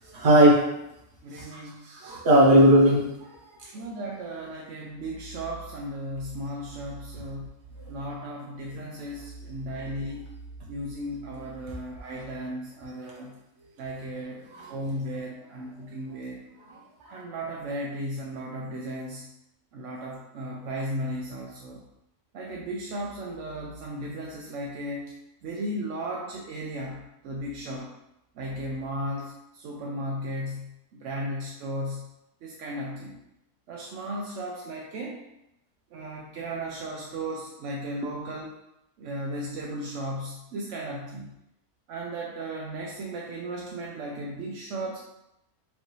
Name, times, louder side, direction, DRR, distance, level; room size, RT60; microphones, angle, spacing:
voice 1, 0.1-0.7 1.3-1.4 1.9-3.3 3.6-3.7 14.5-14.6 16.7-16.8 17.0-17.1, right 1 dB, 50° right, -4 dB, 1.3 m, -18 dB
voice 2, 1.2-1.9 3.7-7.5 7.9-10.2 10.7-13.3 13.8-14.4 14.7-16.4 17.1-19.3 19.7-21.8 22.3-25.1 25.4-27.0 27.2-27.9 28.4-32.1 32.4-33.2 33.7-35.2 35.9-38.6 39.0-41.3 41.9-45.0, right 1 dB, 65° right, -2 dB, 0.8 m, -35 dB
5.1 x 2.6 x 3.1 m, 0.85 s
omnidirectional pair, 1.6 m